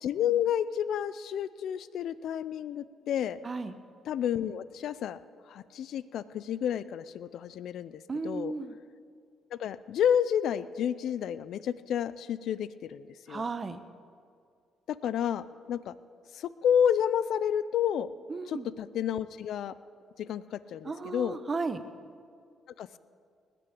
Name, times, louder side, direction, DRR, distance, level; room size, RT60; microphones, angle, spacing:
voice 1, 0.0-3.4 4.1-5.2 5.5-8.5 9.5-13.5 15.0-15.9 16.3-18.1 18.5-19.7 20.2-21.4 22.8-23.0, left 9 dB, 75° left, 16 dB, 0.4 m, -30 dB
voice 2, 3.4-3.8 8.1-8.8 13.3-13.8 18.3-18.7 20.8-21.8, right 4 dB, 35° right, 11 dB, 0.9 m, -34 dB
19.5 x 6.9 x 8.5 m, 2.3 s
cardioid pair, 90°, 0 cm